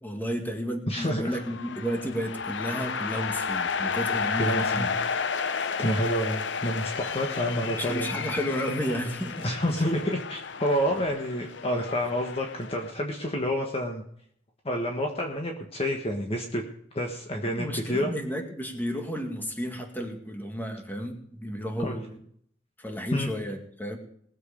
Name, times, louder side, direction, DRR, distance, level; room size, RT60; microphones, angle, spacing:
voice 1, 0.0-4.9 7.3-9.5 9.8-9.9 11.0-11.1 17.5-22.2 22.8-24.0, equal, 10° left, 3 dB, 2.1 m, -32 dB
voice 2, 0.9-1.4 4.4-4.9 5.8-8.3 9.4-14.0 14.6-16.6 16.9-18.1 21.8-22.0 23.1-23.3, equal, 35° left, 2 dB, 1.4 m, -28 dB
sound 1, 1.4-12.9, left 5 dB, 70° left, 0.7 m, -32 dB
20.0 x 7.7 x 5.1 m, 0.65 s
head